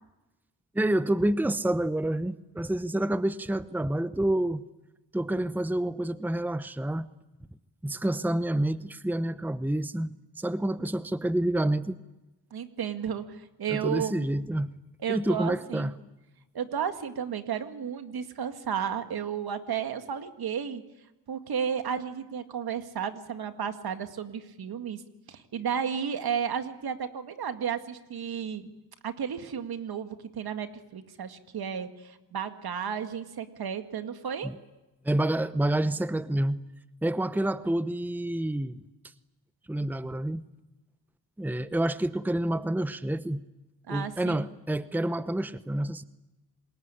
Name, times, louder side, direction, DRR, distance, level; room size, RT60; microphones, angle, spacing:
voice 1, 0.7-4.6 5.1-7.1 7.8-10.1 10.4-12.0 13.7-14.7 15.1-15.9 34.4-34.6 35.0-36.6 37.0-38.8 39.7-40.4 41.4-43.4 43.9-46.0, right 1 dB, 5° right, 14 dB, 0.9 m, -28 dB
voice 2, 12.5-14.3 15.0-15.9 16.5-20.8 21.3-25.0 25.3-28.7 29.0-34.5 43.9-44.4, right 7 dB, 70° right, 8 dB, 2.2 m, -33 dB
27.0 x 20.5 x 10.0 m, 1.0 s
cardioid pair, 75°, 39 cm